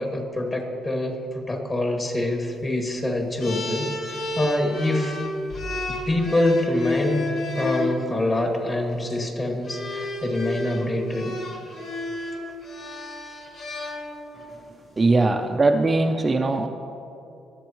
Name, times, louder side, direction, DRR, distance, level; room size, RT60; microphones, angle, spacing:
voice 1, 0.0-5.2 5.9-11.4, left 1 dB, 30° left, 1 dB, 2.3 m, -25 dB
sound 1, 3.4-7.9 8.9-9.2 9.7-14.5, left 2 dB, 70° left, 2.1 m, -31 dB
voice 2, 15.0-16.7, right 2 dB, 30° right, 4 dB, 0.6 m, -20 dB
22.0 x 8.2 x 3.1 m, 2.7 s
cardioid pair, 90°, 0 cm